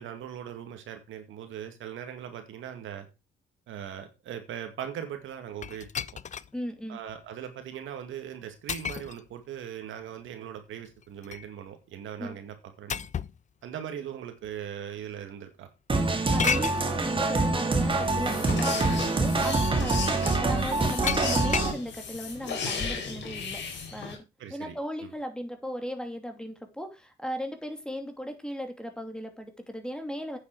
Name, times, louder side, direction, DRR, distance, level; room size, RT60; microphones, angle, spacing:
voice 1, 0.0-3.1 3.7-6.0 6.9-13.1 13.6-15.7 16.5-16.9 24.4-24.8 25.0-25.1, right 9 dB, 80° right, 7 dB, 2.2 m, -40 dB
sound 1, 5.6-6.5 7.1-7.2 8.7-9.2 10.8-11.5 12.9-13.4 14.4-14.5 16.4-16.8 18.2-18.3 18.8-19.1 21.0-21.8, left 7 dB, 40° left, 0.5 m, -32 dB
voice 2, 6.5-7.0 12.2-12.4 16.3-23.6 23.9-24.2 24.5-30.4, equal, 5° left, 6 dB, 2.7 m, -37 dB
sound 2, 15.9-21.7, right 3 dB, 25° right, 2.2 m, -25 dB
sound 3, 17.8-24.2, left 5 dB, 65° left, 3.8 m, -36 dB
9.2 x 8.1 x 4.8 m, 0.28 s
cardioid pair, 90°, 20 cm